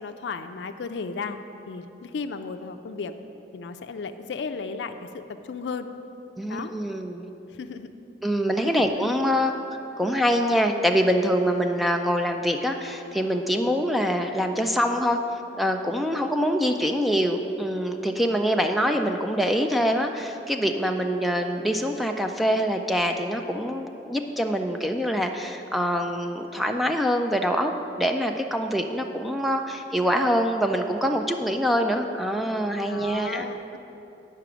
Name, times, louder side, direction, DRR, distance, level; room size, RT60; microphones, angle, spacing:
voice 1, 0.0-3.1 3.5-5.9 6.5-6.7 7.5-7.9 8.7-9.3 32.9-33.8, left 4 dB, 80° left, 8 dB, 0.4 m, -35 dB
voice 2, 6.4-7.3 8.2-9.5 10.0-15.2 15.6-27.7 28.0-33.5, equal, ahead, 4 dB, 0.3 m, -24 dB
8.9 x 5.8 x 6.1 m, 2.9 s
head